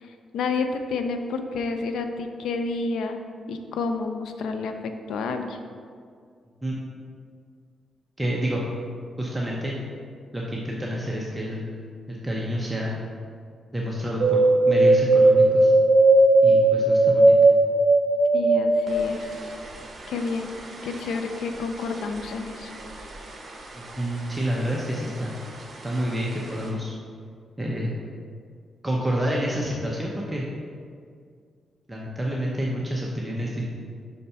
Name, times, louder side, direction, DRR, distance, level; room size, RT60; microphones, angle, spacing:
voice 1, 0.0-3.2 3.5-5.6 18.3-19.2 20.1-20.5 20.8-22.7, left 4 dB, 90° left, 6 dB, 0.5 m, -29 dB
voice 2, 8.2-8.6 9.2-9.8 10.3-11.8 12.1-13.0 13.7-15.7 16.4-17.3 23.7-25.4 25.8-26.9 27.6-27.9 28.8-30.4 31.9-33.6, equal, 15° right, -3 dB, 0.8 m, -28 dB
sound 1, 14.2-23.6 23.9-24.7 25.1-26.0 26.4-26.5, right 2 dB, 45° right, 1.0 m, -19 dB
5.6 x 4.1 x 5.5 m, 2.1 s
cardioid pair, 100°, 0 cm